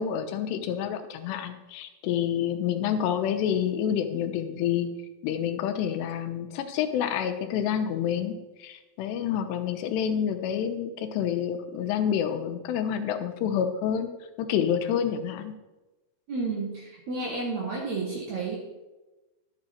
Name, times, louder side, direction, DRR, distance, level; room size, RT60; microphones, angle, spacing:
voice 1, 0.0-4.9 5.2-14.1 14.4-15.5, left 9 dB, 90° left, 7 dB, 3.0 m, -28 dB
voice 2, 16.3-18.6, right 3 dB, 65° right, -2 dB, 1.9 m, -31 dB
11.5 x 8.0 x 4.2 m, 1.1 s
omnidirectional pair, 4.7 m